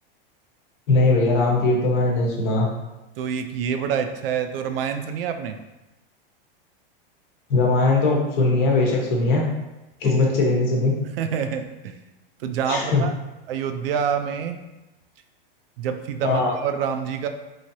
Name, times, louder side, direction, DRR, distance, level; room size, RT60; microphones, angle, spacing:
voice 1, 0.9-2.7 7.5-9.4 10.0-10.9 12.7-13.0 16.2-16.5, left 2 dB, 55° left, -2 dB, 1.0 m, -20 dB
voice 2, 3.2-5.6 10.0-10.3 11.2-12.0 12.4-13.1 13.5-14.6 15.8-17.3, right 7 dB, 75° right, 7 dB, 0.4 m, -27 dB
3.1 x 2.7 x 2.6 m, 1.0 s
hypercardioid pair, 125°, 29 cm